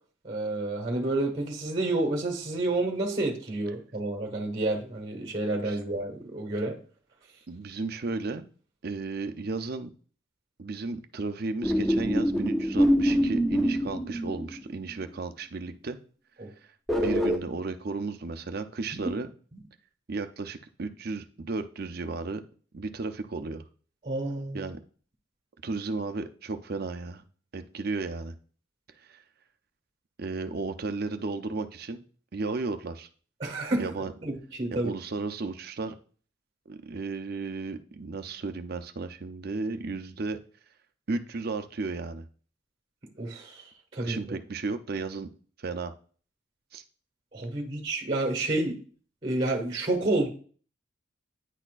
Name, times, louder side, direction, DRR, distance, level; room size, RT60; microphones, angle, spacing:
voice 1, 0.2-6.8 16.4-16.5 24.0-24.6 33.4-33.9 34.2-34.9 43.2-44.2 47.3-48.8 49.2-50.3, right 2 dB, 25° right, 1.5 m, -29 dB
voice 2, 7.5-8.4 8.8-9.9 10.6-16.0 16.6-16.7 17.0-19.3 20.1-22.4 22.7-23.6 24.5-24.8 25.6-27.2 27.5-28.3 29.1-29.2 30.2-32.0 32.3-33.1 33.8-34.1 34.7-36.0 36.7-40.4 41.1-42.2 44.0-45.3 45.6-45.9 46.7-46.8, right 3 dB, 50° right, 0.5 m, -34 dB
sound 1, 11.6-14.8 16.9-17.4, equal, ahead, 0.6 m, -25 dB
9.8 x 4.2 x 2.4 m
head